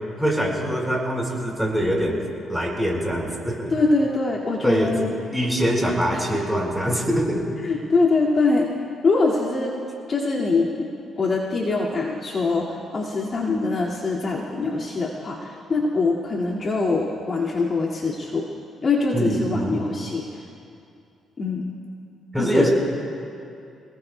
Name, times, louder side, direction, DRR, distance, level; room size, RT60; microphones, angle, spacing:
voice 1, 0.2-2.2 2.5-3.7 4.6-4.9 5.3-7.4 19.1-19.8 22.3-22.7, equal, ahead, -2 dB, 4.6 m, -23 dB
voice 2, 3.7-5.2 6.1-6.4 7.6-8.7 9.0-9.8 10.1-10.9 11.2-18.4 18.8-20.4 21.4-21.7 22.4-22.7, left 3 dB, 45° left, -4 dB, 2.1 m, -23 dB
28.5 x 19.5 x 2.2 m, 2.5 s
cardioid pair, 90°, 0 cm